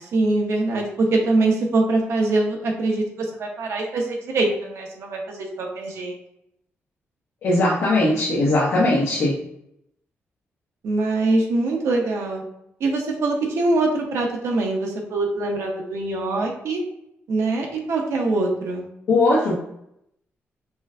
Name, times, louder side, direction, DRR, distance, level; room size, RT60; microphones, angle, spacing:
voice 1, 0.1-6.2 10.8-12.4 12.8-16.8 17.3-18.9, right 2 dB, 75° right, 0 dB, 0.9 m, -23 dB
voice 2, 7.4-9.3 19.1-19.6, left 2 dB, 85° left, -7 dB, 1.0 m, -19 dB
5.9 x 2.1 x 2.5 m, 0.77 s
wide cardioid pair, 150°, 5 cm